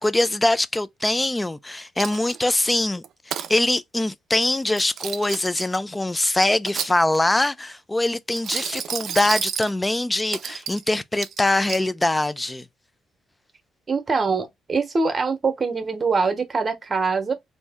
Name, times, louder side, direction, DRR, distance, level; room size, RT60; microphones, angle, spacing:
voice 1, 0.0-12.6, left 2 dB, 15° left, 0.4 m, -23 dB
Coin (dropping), 2.0-2.6 3.0-3.5 4.6-5.8 6.4-7.4 8.3-9.7 10.3-10.8 11.2-11.9, right 9 dB, 70° right, 0.4 m, -31 dB
voice 2, 13.9-17.3, right 4 dB, 35° right, 0.9 m, -23 dB
3.0 x 2.7 x 3.5 m
cardioid pair, 90°, 0 cm